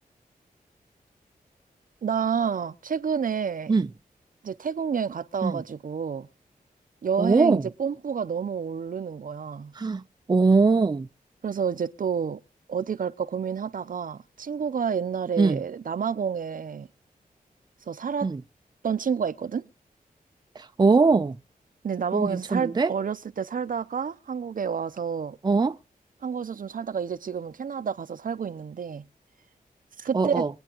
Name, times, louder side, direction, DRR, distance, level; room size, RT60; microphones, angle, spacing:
voice 1, 2.0-3.8 4.4-6.3 7.0-9.7 11.4-12.4 12.7-16.9 17.9-18.3 18.8-19.6 21.8-25.4 26.2-29.0 30.0-30.4, right 7 dB, 65° right, 0.7 m, -29 dB
voice 2, 7.2-7.6 9.8-10.0 10.3-11.1 15.4-15.6 18.2-18.4 20.8-21.3 22.1-22.9 25.4-25.7 30.1-30.5, right 4 dB, 25° right, 0.6 m, -21 dB
24.0 x 8.9 x 3.0 m
wide cardioid pair, 95°, 15 cm